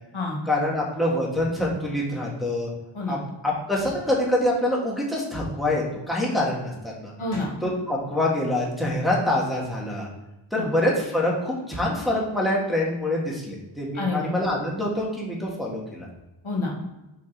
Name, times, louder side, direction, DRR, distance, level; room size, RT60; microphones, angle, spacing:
voice 1, 0.4-2.7 3.1-3.2 3.4-7.1 7.6-10.1 10.5-16.1, left 1 dB, ahead, -5 dB, 1.8 m, -25 dB
voice 2, 7.2-7.5 10.6-10.7 13.9-14.3 16.4-16.9, left 2 dB, 75° left, -1 dB, 1.5 m, -28 dB
5.1 x 3.9 x 4.7 m, 1.0 s
wide cardioid pair, 45°, 49 cm